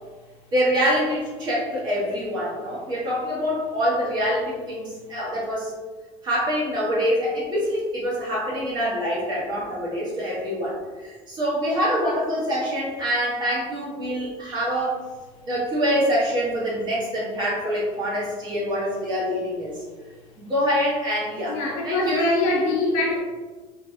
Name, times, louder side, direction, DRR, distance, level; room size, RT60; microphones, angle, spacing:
voice 1, 0.5-5.7 6.2-15.0 15.5-19.8 20.4-21.6 21.8-22.3, equal, 30° right, -6 dB, 1.1 m, -25 dB
voice 2, 21.5-23.2, left 2 dB, 60° left, -2 dB, 0.9 m, -23 dB
3.3 x 3.0 x 2.6 m, 1.3 s
cardioid pair, 150°, 14 cm